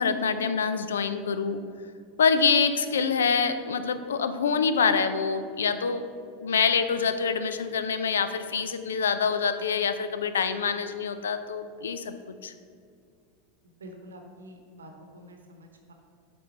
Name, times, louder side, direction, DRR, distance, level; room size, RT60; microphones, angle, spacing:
voice 1, 0.0-1.6 2.2-6.0 6.4-12.1 12.4-12.5, left 5 dB, 75° left, 10 dB, 0.4 m, -26 dB
voice 2, 13.8-15.9, equal, 80° right, 3 dB, 0.9 m, -47 dB
7.7 x 3.8 x 4.3 m, 2.3 s
figure-of-eight pair, 85°, 0 cm